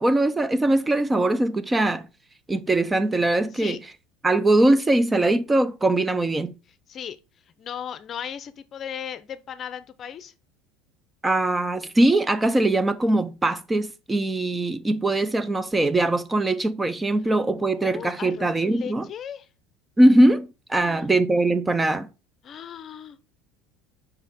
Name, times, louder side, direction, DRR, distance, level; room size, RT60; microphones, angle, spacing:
voice 1, 0.0-2.1 2.5-3.8 4.2-6.5 11.2-19.1 20.0-22.1, right 1 dB, 15° right, 0.4 m, -21 dB
voice 2, 7.6-10.3 17.6-19.5 20.7-21.1 22.4-23.2, left 9 dB, 40° left, 0.6 m, -37 dB
5.6 x 4.8 x 3.5 m
supercardioid pair, 115°, 0 cm